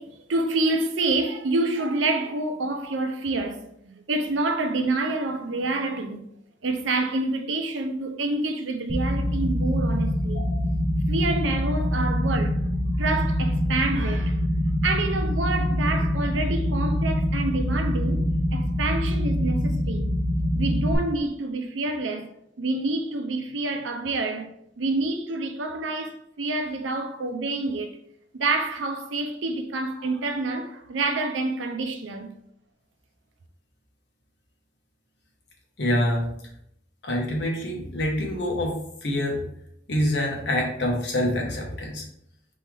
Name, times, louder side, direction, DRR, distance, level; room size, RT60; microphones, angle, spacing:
voice 1, 0.0-6.2 6.6-10.5 11.1-12.7 13.0-14.4 14.8-18.2 18.5-20.2 20.6-22.3 22.6-24.5 24.8-27.9 28.3-32.3, right 2 dB, 85° right, 0.6 m, -27 dB
sound 1, 8.9-20.9, equal, 25° right, 0.9 m, -25 dB
voice 2, 35.8-36.3 37.0-39.4 39.9-42.0, left 1 dB, 65° left, 1.3 m, -26 dB
4.2 x 3.7 x 3.4 m
head